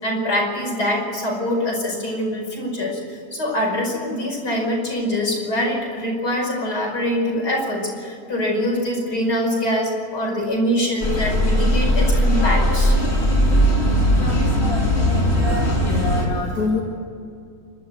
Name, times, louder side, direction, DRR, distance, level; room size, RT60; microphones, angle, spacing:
voice 1, 0.0-3.0 3.3-13.0, equal, 80° left, -1 dB, 6.0 m, -24 dB
sound 1, 11.0-16.3, equal, 40° left, 4.2 m, -18 dB
voice 2, 15.4-16.8, left 3 dB, 65° left, -3 dB, 2.9 m, -26 dB
29.5 x 12.5 x 8.0 m, 2.5 s
omnidirectional pair, 1.7 m